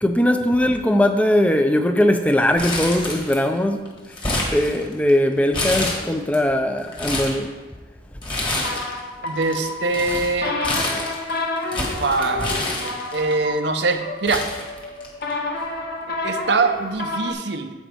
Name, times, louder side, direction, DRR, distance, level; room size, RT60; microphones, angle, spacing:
voice 1, 0.0-3.9 4.5-7.5 8.6-8.7, left 1 dB, 5° left, 0.5 m, -20 dB
Crumpling crinkling, 2.6-3.6 3.9-5.1 5.5-6.4 6.8-7.4 8.2-9.0 9.3-13.3 13.9-14.0 14.3-15.3 15.6-15.7 16.7-16.9, left 2 dB, 25° left, 1.6 m, -27 dB
sound 1, 8.4-17.3, left 2 dB, 50° left, 1.0 m, -30 dB
voice 2, 9.2-10.6 12.0-12.6 13.1-14.5 16.1-17.7, right 3 dB, 70° right, 0.7 m, -23 dB
15.0 x 5.0 x 3.4 m
head